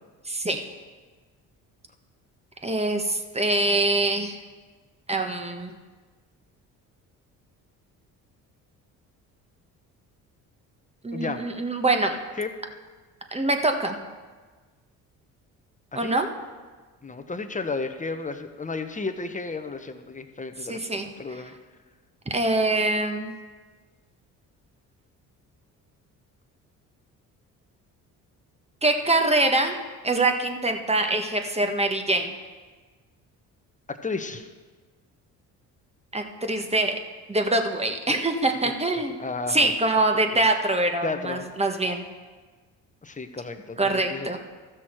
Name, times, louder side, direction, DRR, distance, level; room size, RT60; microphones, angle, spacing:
voice 1, 0.3-0.6 2.6-4.4 5.1-5.8 11.0-12.2 13.3-14.0 15.9-16.3 20.7-21.1 22.3-23.4 28.8-29.8 30.0-32.3 36.1-36.9 37.3-39.2 39.5-42.1 43.8-44.4, right 2 dB, 15° right, 4 dB, 1.3 m, -24 dB
voice 2, 11.1-11.4 12.4-12.5 15.9-16.1 17.0-21.5 33.9-34.5 38.1-38.2 38.6-38.7 39.2-39.7 40.1-40.4 41.0-41.4 43.0-44.4, left 3 dB, 20° left, 8 dB, 1.0 m, -33 dB
14.0 x 6.3 x 4.5 m, 1.4 s
supercardioid pair, 60°, 38 cm